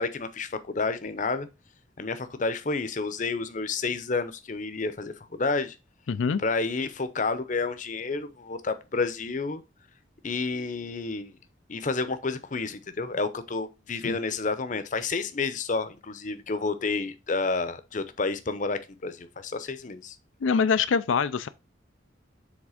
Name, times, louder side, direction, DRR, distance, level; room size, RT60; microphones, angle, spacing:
voice 1, 0.0-1.5 2.0-5.8 6.4-9.6 10.2-11.3 11.7-20.1, left 3 dB, 40° left, 0.7 m, -30 dB
voice 2, 6.1-6.4 14.0-14.2 20.4-21.5, left 5 dB, 85° left, 0.4 m, -24 dB
7.3 x 3.5 x 4.9 m
head